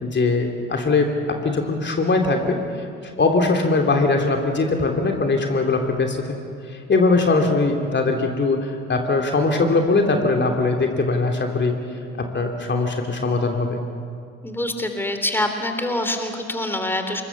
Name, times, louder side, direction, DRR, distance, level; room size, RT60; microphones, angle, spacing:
voice 1, 0.0-2.6 3.0-6.3 6.7-11.7 12.2-13.8, left 3 dB, 30° left, 3 dB, 3.0 m, -21 dB
voice 2, 14.4-17.2, left 1 dB, 5° left, 6 dB, 3.4 m, -25 dB
27.5 x 23.0 x 7.1 m, 2.4 s
figure-of-eight pair, 45°, 34 cm